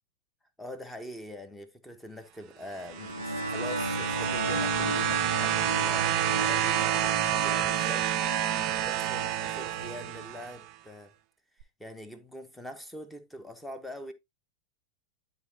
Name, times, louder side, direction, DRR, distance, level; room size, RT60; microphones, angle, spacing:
voice 1, 0.6-8.1 8.6-11.1 11.8-14.1, left 1 dB, 5° left, 1.1 m, -43 dB
sound 1, 2.8-10.5 11.6-11.7, right 12 dB, 40° right, 0.5 m, -29 dB
sound 2, 2.9-10.2, equal, 90° left, 0.4 m, -36 dB
11.0 x 4.0 x 2.7 m
figure-of-eight pair, 90°, 0 cm